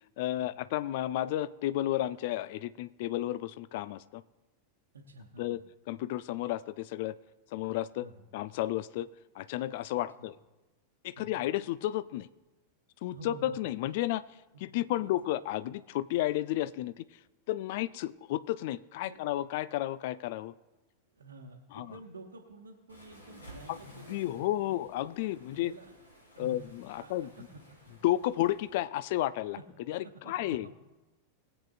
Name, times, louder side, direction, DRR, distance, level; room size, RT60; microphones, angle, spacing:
voice 1, 0.2-4.2 5.4-5.6 5.9-7.1 7.5-9.1 9.4-10.4 11.0-12.3 13.0-14.2 14.6-17.1 17.5-20.5 21.7-22.0 23.7-25.7 26.4-27.5 27.9-30.7, left 14 dB, 50° left, 15 dB, 0.4 m, -32 dB
voice 2, 4.9-5.6 8.0-8.2 10.2-10.3 11.2-11.4 13.1-13.7 15.0-15.1 19.0-19.2 21.1-24.8 25.5-25.9 26.3-26.6 26.9-27.9 30.0-30.7, right 2 dB, 70° right, -1 dB, 1.0 m, -50 dB
Waves surf, 22.9-28.8, equal, 75° left, 3.6 m, -55 dB
20.5 x 8.0 x 2.4 m, 1.1 s
figure-of-eight pair, 90°, 0 cm